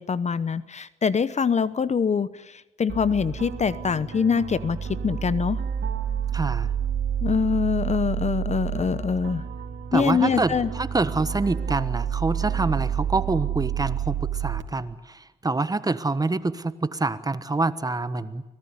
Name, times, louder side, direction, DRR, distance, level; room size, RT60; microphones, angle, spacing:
voice 1, 0.0-5.6 7.2-9.4 9.9-10.7, left 6 dB, 35° left, 16 dB, 0.9 m, -24 dB
sound 1, 2.9-14.6, right 9 dB, 70° right, 3.0 m, -29 dB
voice 2, 6.3-6.7 9.9-18.4, right 3 dB, 20° right, 14 dB, 1.3 m, -26 dB
25.0 x 18.5 x 9.7 m, 1.1 s
cardioid pair, 90°, 20 cm